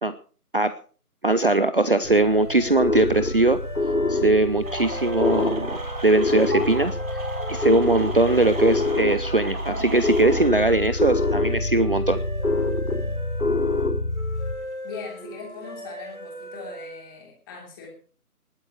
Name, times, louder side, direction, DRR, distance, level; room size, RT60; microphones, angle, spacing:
voice 1, 1.2-3.6 4.1-7.0 7.5-12.2, right 2 dB, 35° right, 13 dB, 0.7 m, -21 dB
sound 1, 2.0-14.5, left 2 dB, 65° left, 3.1 m, -26 dB
sound 2, 2.1-17.2, right 1 dB, 75° right, 6.5 m, -38 dB
sound 3, 4.6-10.5, right 2 dB, 60° right, 6.8 m, -35 dB
voice 2, 14.8-17.9, left 5 dB, 15° left, 0 dB, 3.1 m, -40 dB
20.0 x 8.5 x 4.9 m, 0.40 s
figure-of-eight pair, 160°, 46 cm